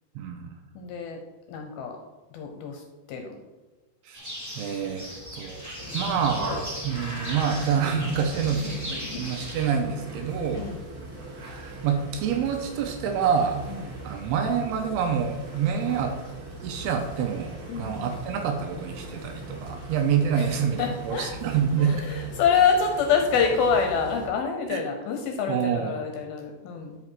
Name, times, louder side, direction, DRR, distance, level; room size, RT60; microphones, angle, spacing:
voice 1, 0.2-0.6 4.1-4.2 4.6-5.1 5.3-6.5 6.8-10.7 11.4-13.7 14.0-16.1 16.6-22.0 24.7-24.8 25.5-25.9, right 7 dB, 80° right, 4 dB, 2.6 m, -27 dB
voice 2, 0.8-1.2 1.5-1.9 2.3-2.8 3.1-3.4 5.8-6.0 8.6-9.3 10.5-10.8 13.7-13.8 17.7-18.4 20.4-20.5 20.8-21.3 21.8-27.0, left 6 dB, 75° left, 4 dB, 2.4 m, -27 dB
sound 1, 4.1-9.7, equal, 10° right, 0.9 m, -38 dB
sound 2, 5.8-24.3, right 2 dB, 40° right, 1.7 m, -40 dB
11.5 x 5.3 x 4.6 m, 1.1 s
omnidirectional pair, 5.0 m